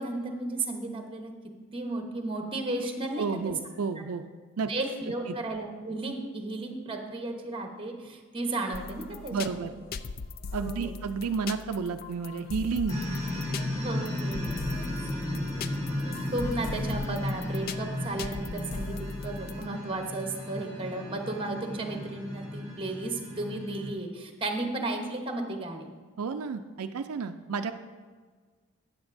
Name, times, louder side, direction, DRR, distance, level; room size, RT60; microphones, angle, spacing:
voice 1, 0.0-1.3 1.7-3.5 4.7-9.6 10.6-10.9 13.8-14.9 16.3-19.0 19.2-25.9, right 2 dB, 25° right, 3 dB, 1.0 m, -34 dB
voice 2, 3.2-4.2 4.6-4.7 5.3-5.4 9.3-9.7 10.5-13.0 26.2-27.7, right 5 dB, 80° right, 8 dB, 0.4 m, -31 dB
sound 1, 8.7-19.7, left 4 dB, 40° left, 0.3 m, -40 dB
sound 2, 12.9-23.9, left 1 dB, 15° left, 1.3 m, -34 dB
13.0 x 9.0 x 2.6 m, 1.5 s
head